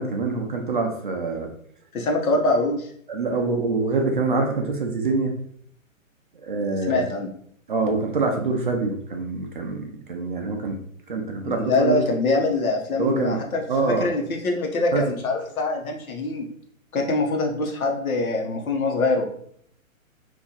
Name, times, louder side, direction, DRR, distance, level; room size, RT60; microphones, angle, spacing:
voice 1, 0.0-1.5 3.1-5.4 6.3-7.1 7.7-10.8 11.1-12.0 12.9-14.2 14.9-15.2, right 3 dB, 40° right, 3 dB, 0.4 m, -25 dB
voice 2, 1.9-2.9 6.6-7.3 11.4-16.5 16.9-19.3, left 2 dB, 85° left, 2 dB, 1.1 m, -24 dB
2.9 x 2.6 x 3.7 m, 0.64 s
hypercardioid pair, 160°, 42 cm